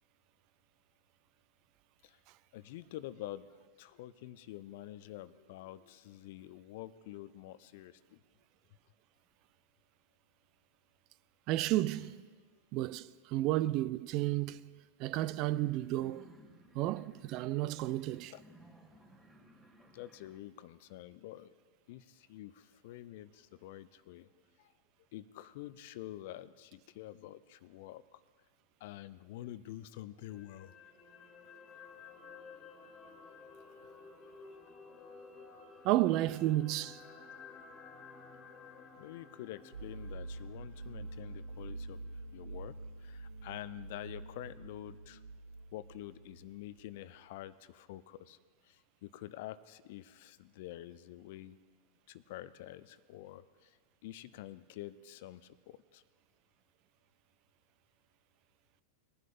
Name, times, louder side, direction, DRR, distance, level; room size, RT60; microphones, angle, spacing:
voice 1, 2.5-3.5 3.8-8.2 18.3-18.4 19.9-21.5 21.9-24.3 24.6-24.7 25.1-28.2 28.8-30.7 39.0-45.2 45.7-48.4 48.6-51.6 52.1-56.0, left 14 dB, 50° left, 0.5 m, -48 dB
voice 2, 11.5-12.2 12.7-14.6 15.0-16.3 16.7-18.3 35.8-37.0, right 15 dB, 40° right, 0.4 m, -32 dB
sound 1, 15.3-20.4, equal, 5° right, 2.0 m, -60 dB
Dreamy Jazz Fantasy Ambient, 30.3-42.6 43.0-43.1, left 5 dB, 25° left, 1.7 m, -54 dB
sound 2, 39.7-47.1, right 2 dB, 75° right, 0.7 m, -46 dB
21.5 x 11.0 x 2.6 m
figure-of-eight pair, 90°, 0 cm